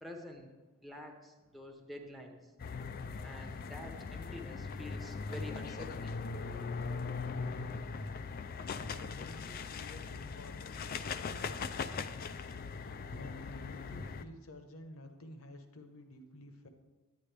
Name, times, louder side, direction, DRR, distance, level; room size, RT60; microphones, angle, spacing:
voice 1, 0.0-0.5 0.8-2.5 3.2-6.2, left 1 dB, ahead, 2 dB, 0.8 m, -48 dB
sound 1, 2.6-14.2, left 4 dB, 45° left, 0.4 m, -40 dB
voice 2, 8.9-12.2 12.7-16.7, left 1 dB, 70° left, 6 dB, 1.0 m, -52 dB
9.8 x 9.7 x 3.4 m, 1.2 s
head